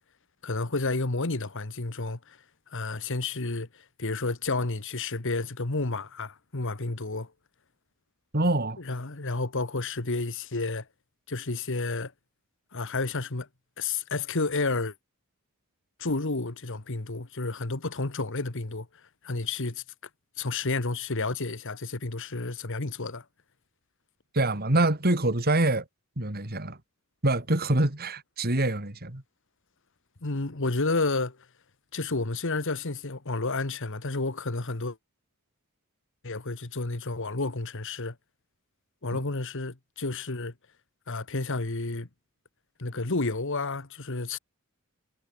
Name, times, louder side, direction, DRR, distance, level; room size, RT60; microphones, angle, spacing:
voice 1, 0.4-2.4 2.7-7.3 8.9-10.9 11.3-12.1 12.7-13.5 13.8-14.9 16.0-18.9 19.2-19.8 20.4-23.2 30.2-31.4 31.9-35.0 36.2-38.1 39.0-40.5 41.1-42.1 42.8-44.4, left 3 dB, 60° left, 1.6 m, -31 dB
voice 2, 8.3-8.8 24.3-25.9 26.2-26.8 27.2-29.2, right 2 dB, 45° right, 2.8 m, -25 dB
head